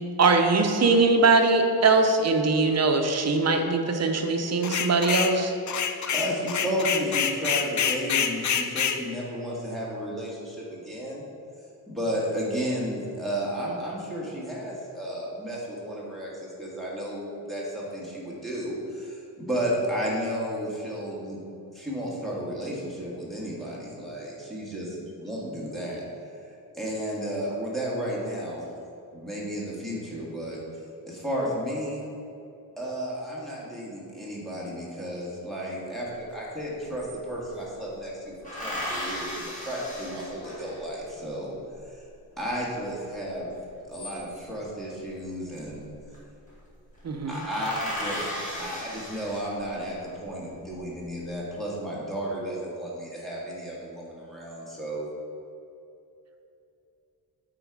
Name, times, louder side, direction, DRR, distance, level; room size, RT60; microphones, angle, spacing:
voice 1, 0.2-5.5 47.0-47.4, right 3 dB, 40° right, 4 dB, 0.6 m, -21 dB
sound 1, 4.6-5.4 5.7-9.0, left 7 dB, 50° left, 0.4 m, -26 dB
voice 2, 6.1-11.3 11.9-21.4 21.7-26.0 26.7-28.7 29.1-30.6 31.1-32.0 32.8-38.3 38.6-41.5 41.9-42.0 42.4-43.5 43.8-45.9 47.3-55.1, equal, ahead, -6 dB, 1.5 m, -33 dB
sound 2, 36.3-36.4 36.6-37.7 38.4-41.0 43.6-44.6 45.8-46.2 46.5-46.6 46.9-47.0 47.3-49.8 50.4-51.1, left 1 dB, 20° left, 1.7 m, -36 dB
8.9 x 4.1 x 4.7 m, 2.7 s
wide cardioid pair, 175°, 40 cm